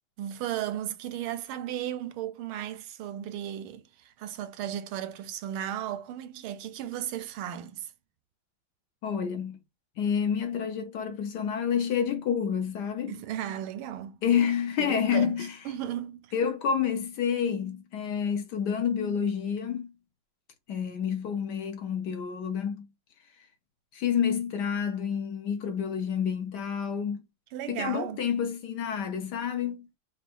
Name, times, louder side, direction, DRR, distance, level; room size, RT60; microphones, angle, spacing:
voice 1, 0.2-7.9 13.1-14.2 14.8-15.4 15.6-16.3 27.5-28.2, right 11 dB, 90° right, 1.5 m, -35 dB
voice 2, 9.0-9.6 10.0-13.2 14.2-15.6 16.3-19.9 20.7-22.9 23.4-23.5 23.9-27.2 27.7-29.9, left 7 dB, 65° left, 1.1 m, -29 dB
4.2 x 2.1 x 4.5 m
omnidirectional pair, 2.2 m